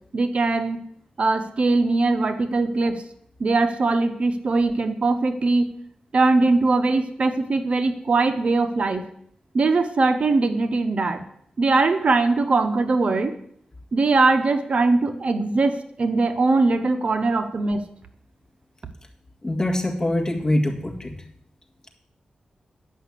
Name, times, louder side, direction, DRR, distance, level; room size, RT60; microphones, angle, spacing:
voice 1, 0.1-0.8 1.2-3.0 3.4-5.7 6.1-9.0 9.5-11.2 11.6-13.3 13.9-17.8, right 3 dB, 50° right, 9 dB, 0.8 m, -21 dB
voice 2, 19.4-21.2, left 1 dB, 25° left, 2 dB, 1.8 m, -24 dB
10.0 x 5.8 x 8.3 m, 0.68 s
wide cardioid pair, 115°, 3 cm